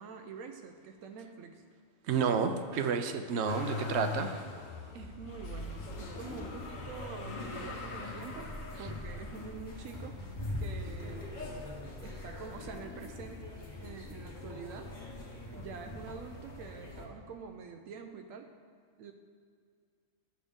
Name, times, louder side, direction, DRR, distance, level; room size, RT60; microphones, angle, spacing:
voice 1, 0.0-1.6 4.9-10.2 10.6-11.3 12.0-14.9 15.5-18.5 19.0-19.1, right 5 dB, 85° right, 5 dB, 1.0 m, -46 dB
voice 2, 2.1-4.4, right 6 dB, 65° right, 8 dB, 0.8 m, -30 dB
Motor vehicle (road), 3.4-12.6 13.2-14.0 14.3-15.4 16.4-16.5, left 3 dB, 85° left, 1.3 m, -44 dB
sound 1, 5.4-17.1, left 2 dB, 40° left, 1.2 m, -43 dB
11.5 x 6.6 x 3.6 m, 2.1 s
omnidirectional pair, 1.3 m